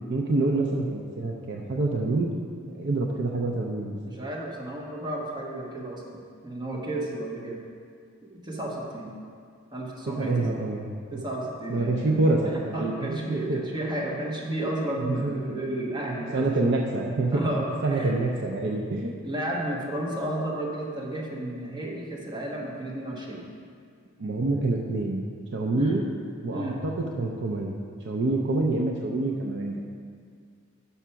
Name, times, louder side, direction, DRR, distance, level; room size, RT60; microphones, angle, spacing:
voice 1, 0.1-2.3 2.6-4.0 10.1-11.2 11.7-13.6 15.0-15.4 16.3-17.4 17.8-19.1 24.2-25.2 25.5-26.0 26.4-27.7 28.0-29.7, right 2 dB, 55° right, 0 dB, 0.5 m, -26 dB
voice 2, 4.0-7.6 8.2-9.1 9.7-10.6 11.1-12.1 12.4-16.5 17.3-18.1 19.2-23.5 25.8-26.0 26.5-26.8, right 1 dB, 20° right, -3 dB, 1.2 m, -32 dB
6.1 x 5.7 x 5.7 m, 2.2 s
head